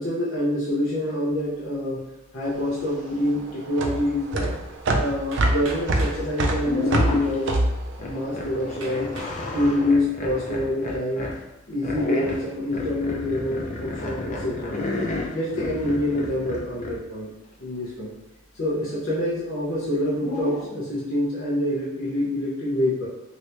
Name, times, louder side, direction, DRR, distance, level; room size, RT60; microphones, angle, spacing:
voice 1, 0.0-2.0 2.3-4.5 5.0-7.6 8.0-9.1 9.5-11.3 11.7-14.8 15.3-17.3 17.6-18.1 18.5-23.1, left 1 dB, 90° left, -7 dB, 0.8 m, -26 dB
sound 1, 2.4-9.0, right 1 dB, 60° right, 0.4 m, -25 dB
Hammer, 5.3-6.2 7.2-7.3 7.8-7.9 8.8-9.4 10.0-10.4, right 2 dB, 85° right, 0.9 m, -40 dB
sound 2, 6.1-6.3 6.6-7.5 8.0-11.4 11.8-17.0 20.1-20.7, left 2 dB, 40° left, 0.5 m, -31 dB
2.9 x 2.7 x 3.2 m, 0.93 s
head